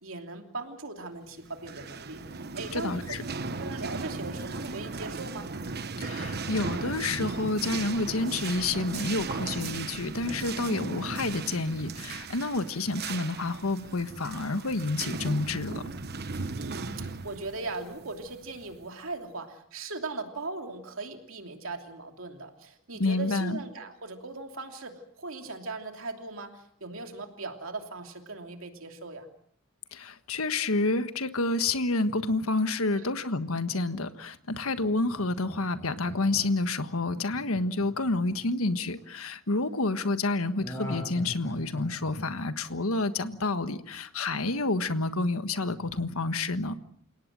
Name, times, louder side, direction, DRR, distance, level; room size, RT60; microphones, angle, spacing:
voice 1, 0.0-3.2 3.6-5.5 16.6-29.3 32.9-33.1, right 3 dB, 70° right, 4 dB, 3.0 m, -39 dB
sound 1, 1.5-18.9, right 3 dB, 50° right, 1.2 m, -37 dB
voice 2, 2.7-3.2 6.0-15.8 23.0-23.6 29.9-46.7, left 2 dB, 90° left, 10 dB, 1.5 m, -29 dB
Laughter, 34.8-39.0 40.6-43.6 43.9-44.0, left 1 dB, 15° left, 7.3 m, -42 dB
29.0 x 18.0 x 7.6 m, 0.65 s
head